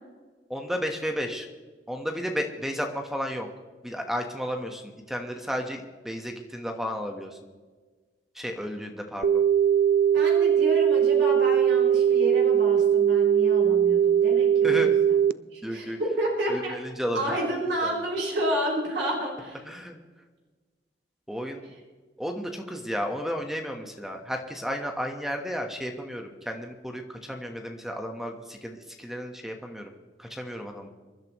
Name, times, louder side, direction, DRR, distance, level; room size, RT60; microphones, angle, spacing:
voice 1, 0.5-1.5 1.9-3.5 3.8-7.4 8.3-9.4 14.6-14.9 15.6-16.0 16.5-17.4 17.8-18.0 19.6-20.0 21.3-21.7 22.2-29.9 30.2-30.9, equal, ahead, 3 dB, 1.2 m, -33 dB
sound 1, 9.2-15.3, right 8 dB, 50° right, 0.4 m, -20 dB
voice 2, 10.1-14.9 15.5-16.7 17.1-19.6, right 1 dB, 80° right, -3 dB, 4.5 m, -30 dB
26.5 x 11.5 x 3.1 m, 1.4 s
head